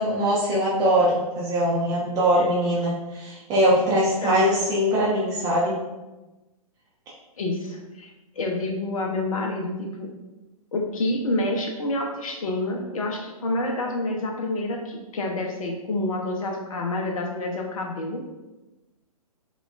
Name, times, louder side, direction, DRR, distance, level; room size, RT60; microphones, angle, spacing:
voice 1, 0.0-5.7, equal, 20° right, -6 dB, 0.6 m, -22 dB
voice 2, 7.4-8.1 8.4-10.1 10.7-18.2, left 2 dB, 65° left, 1 dB, 0.6 m, -28 dB
5.5 x 2.3 x 2.4 m, 1.1 s
figure-of-eight pair, 120°, 19 cm